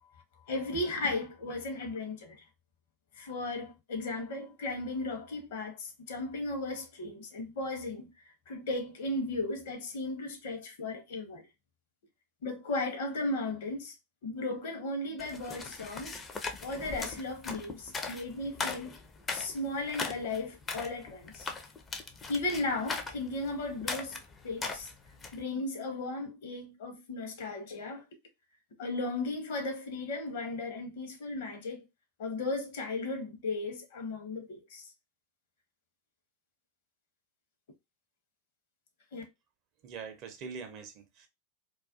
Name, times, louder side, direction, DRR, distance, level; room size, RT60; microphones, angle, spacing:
voice 1, 0.5-2.4 3.1-11.4 12.4-13.9 14.2-16.2 16.6-18.9 19.3-21.5 22.3-24.2 24.4-24.9 25.3-28.0 28.8-31.9 32.2-34.9 39.1-39.2, left 2 dB, 55° left, 0.7 m, -36 dB
sound 1, 15.2-25.4, left 4 dB, 20° left, 0.4 m, -39 dB
voice 2, 39.8-41.3, right 5 dB, 40° right, 0.5 m, -43 dB
2.3 x 2.2 x 2.4 m
figure-of-eight pair, 90°, 0 cm